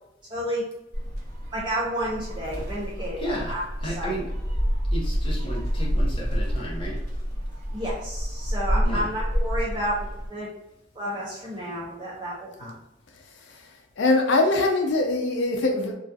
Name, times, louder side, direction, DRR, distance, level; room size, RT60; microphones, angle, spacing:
voice 1, 0.3-0.7 1.5-4.2 7.7-10.5 10.9-12.7, equal, 25° right, -7 dB, 0.5 m, -31 dB
Gull seagull, 0.9-10.3, equal, 55° right, 1.0 m, -28 dB
voice 2, 3.2-3.5 3.8-4.3 4.9-7.0 8.8-9.1, equal, 30° left, -6 dB, 0.7 m, -33 dB
voice 3, 14.0-15.9, left 2 dB, 65° left, 2 dB, 0.4 m, -22 dB
2.3 x 2.3 x 2.6 m, 0.90 s
head